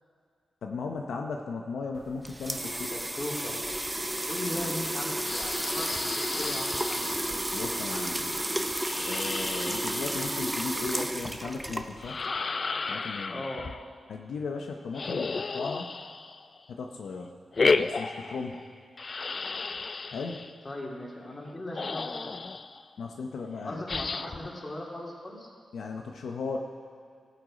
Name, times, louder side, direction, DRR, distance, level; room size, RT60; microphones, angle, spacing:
voice 1, 0.6-2.9 7.5-8.4 9.0-12.2 12.9-13.4 14.1-15.9 16.7-17.3 17.8-18.7 20.1-20.4 23.0-23.8 25.7-26.6, left 4 dB, 80° left, 2 dB, 0.7 m, -36 dB
sound 1, 2.0-12.2, right 1 dB, 10° right, 0.7 m, -32 dB
voice 2, 2.9-3.6 4.3-7.4 13.3-13.6 20.6-22.5 23.6-25.5, left 1 dB, 30° left, -2 dB, 2.4 m, -38 dB
sound 2, 5.2-7.2 8.8-10.6 12.0-13.8 14.9-16.6 17.5-18.7 19.0-20.5 21.5-21.6 21.7-22.8 23.9-24.5, left 4 dB, 45° left, 0.3 m, -32 dB
15.0 x 7.9 x 5.0 m, 2.2 s
cardioid pair, 80°, 0 cm